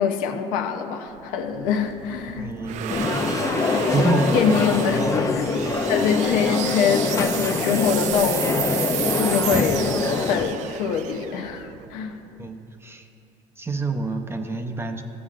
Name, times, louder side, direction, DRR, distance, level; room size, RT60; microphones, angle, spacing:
voice 1, 0.0-2.5 4.0-4.1 4.3-5.0 5.3-8.8 9.1-9.7 10.2-12.2, left 7 dB, 80° left, 5 dB, 0.7 m, -24 dB
sound 1, 1.1-12.4, right 11 dB, 60° right, 0.4 m, -32 dB
voice 2, 2.4-3.3 3.9-5.3 5.6-5.9 9.6-9.9 12.4-13.1 13.6-15.0, right 2 dB, 15° right, 5 dB, 0.6 m, -28 dB
sound 2, 2.9-10.4, left 4 dB, 25° left, 0.4 m, -24 dB
13.5 x 7.1 x 2.5 m, 2.8 s
cardioid pair, 105°, 14 cm